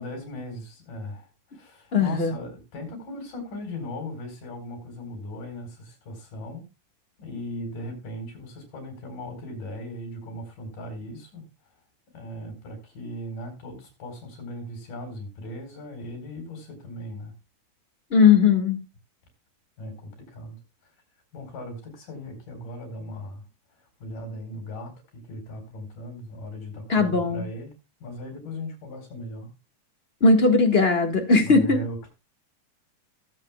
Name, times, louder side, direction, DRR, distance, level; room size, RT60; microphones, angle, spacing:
voice 1, 0.0-6.7 7.2-11.5 12.1-17.3 19.8-20.6 21.3-23.4 24.0-27.7 28.0-29.5 31.4-32.1, left 1 dB, 80° left, 2 dB, 5.8 m, -38 dB
voice 2, 1.9-2.3 18.1-18.8 26.9-27.4 30.2-31.8, left 4 dB, 30° left, 5 dB, 1.3 m, -19 dB
18.5 x 8.0 x 2.3 m, 0.23 s
omnidirectional pair, 3.7 m